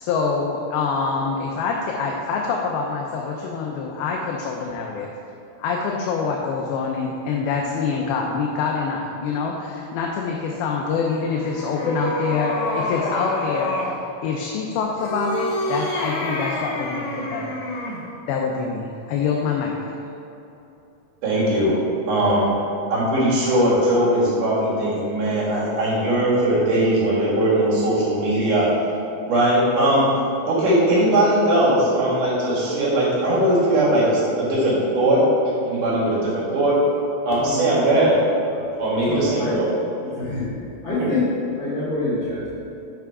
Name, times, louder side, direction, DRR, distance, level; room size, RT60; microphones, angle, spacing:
voice 1, 0.0-5.1 5.6-13.9 14.2-17.6 18.3-20.0, left 5 dB, 80° left, 0 dB, 2.4 m, -25 dB
sound 1, 11.0-14.0 14.9-18.1, left 1 dB, 65° left, 1.9 m, -28 dB
voice 2, 21.2-21.8 22.1-22.5 22.9-28.7 29.2-30.1 30.4-35.2 35.6-36.8 37.3-38.1 38.8-39.7 41.0-41.1, right 1 dB, 60° right, -7 dB, 3.2 m, -19 dB
voice 3, 37.3-37.7 39.0-39.5 40.0-41.3 41.5-42.5, left 2 dB, 50° left, -11 dB, 0.8 m, -26 dB
6.7 x 5.8 x 4.7 m, 2.9 s
omnidirectional pair, 4.5 m